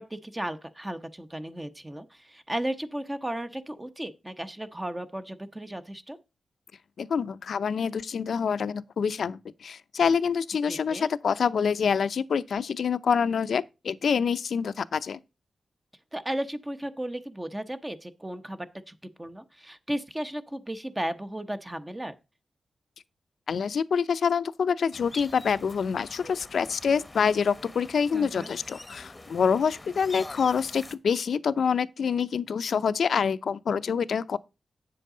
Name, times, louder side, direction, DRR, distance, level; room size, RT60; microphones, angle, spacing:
voice 1, 0.0-6.2 10.7-11.1 16.1-22.1 28.1-28.5, right 1 dB, 15° right, 0.9 m, -35 dB
voice 2, 7.0-15.2 23.5-34.4, left 6 dB, 80° left, 0.6 m, -26 dB
sound 1, 24.9-30.9, left 2 dB, 20° left, 0.9 m, -45 dB
9.1 x 7.7 x 3.8 m
cardioid pair, 80°, 0 cm